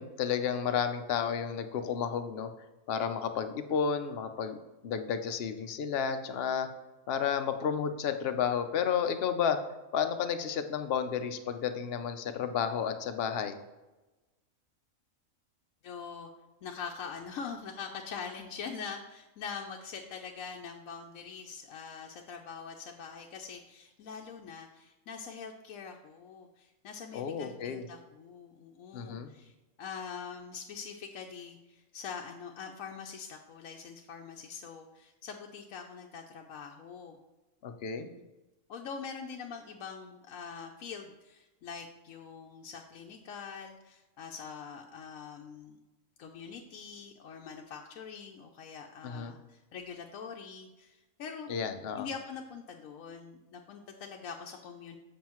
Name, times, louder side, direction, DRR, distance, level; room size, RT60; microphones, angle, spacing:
voice 1, 0.0-2.5 2.9-4.5 4.8-6.7 7.1-9.6 9.9-13.6 27.1-27.8 28.9-29.3 37.6-38.1 49.0-49.3 51.5-52.1, left 7 dB, 55° left, 8 dB, 0.7 m, -32 dB
voice 2, 15.8-16.3 16.6-29.5 29.8-37.2 38.0-38.1 38.7-45.8 46.2-51.5 52.0-55.0, left 6 dB, 80° left, 1 dB, 1.0 m, -44 dB
7.4 x 7.1 x 3.0 m, 1.1 s
omnidirectional pair, 1.4 m